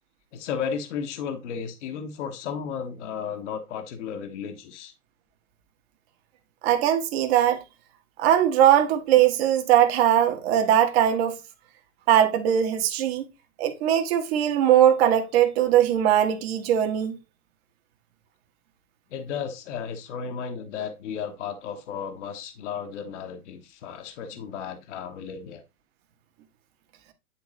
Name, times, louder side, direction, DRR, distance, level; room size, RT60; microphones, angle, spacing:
voice 1, 0.3-4.9 19.1-25.6, left 7 dB, 50° left, 1.2 m, -34 dB
voice 2, 6.6-7.6 8.2-11.4 12.1-13.2 13.6-17.2, right 10 dB, 40° right, 1.5 m, -20 dB
10.5 x 3.7 x 3.1 m
figure-of-eight pair, 115°, 45 cm